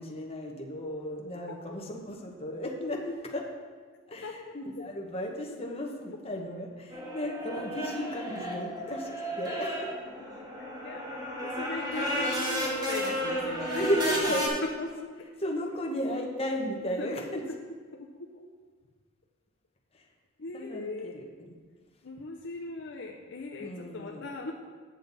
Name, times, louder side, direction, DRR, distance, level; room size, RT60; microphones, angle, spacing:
voice 1, 0.0-3.5 4.1-9.1 9.4-9.9 13.7-14.6 15.4-17.4 19.9-20.1 20.5-21.5 23.6-24.2, equal, 30° left, 0 dB, 1.1 m, -34 dB
voice 2, 4.2-4.5 10.6-13.9 14.1-14.2 14.6-15.3 17.0-17.6 17.9-18.5 20.4-21.1 22.0-24.5, left 3 dB, 60° left, 1 dB, 0.6 m, -39 dB
sound 1, 6.9-14.5, equal, 20° right, 1.6 m, -33 dB
8.9 x 7.2 x 4.0 m, 1.5 s
head